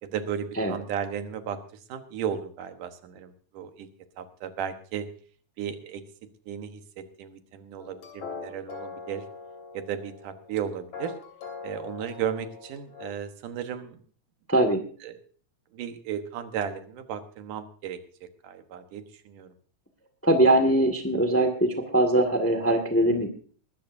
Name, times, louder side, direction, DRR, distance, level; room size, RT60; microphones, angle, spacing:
voice 1, 0.0-1.6 1.9-3.9 4.2-5.1 5.6-6.0 6.5-9.2 9.7-11.1 11.6-14.0 15.0-15.2 15.7-19.5, right 8 dB, 85° right, 8 dB, 2.8 m, -35 dB
sound 1, 7.8-13.1, left 5 dB, 55° left, 3.7 m, -42 dB
voice 2, 14.5-14.8 20.2-23.3, right 1 dB, 10° left, 7 dB, 0.9 m, -22 dB
21.0 x 13.5 x 2.7 m, 0.43 s
omnidirectional pair, 3.6 m